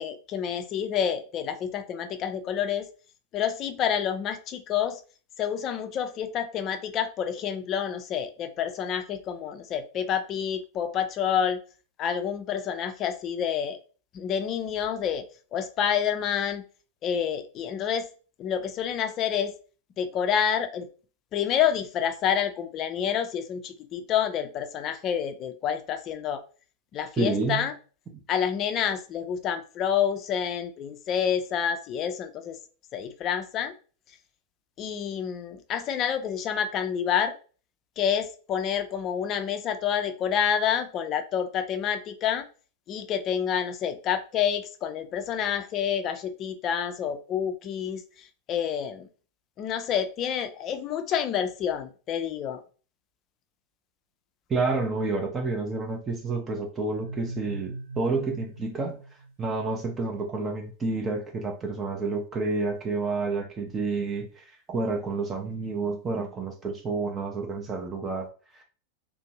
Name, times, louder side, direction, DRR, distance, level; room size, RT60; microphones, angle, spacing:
voice 1, 0.0-2.9 3.3-5.0 5.4-11.6 12.0-13.8 14.1-15.3 15.5-16.6 17.0-18.1 18.4-19.5 20.0-20.9 21.3-26.4 26.9-27.7 28.3-32.6 32.9-33.7 34.8-37.3 38.0-42.4 42.9-49.1 49.6-52.6, left 8 dB, 35° left, 8 dB, 0.4 m, -28 dB
voice 2, 27.2-27.7 28.1-28.2 54.5-59.0 59.4-68.3 68.5-68.6, right 3 dB, 20° right, 1 dB, 0.5 m, -29 dB
sound 1, 56.9-59.7, right 2 dB, 90° right, 0.7 m, -40 dB
2.5 x 2.1 x 2.8 m, 0.37 s
figure-of-eight pair, 90°, 0 cm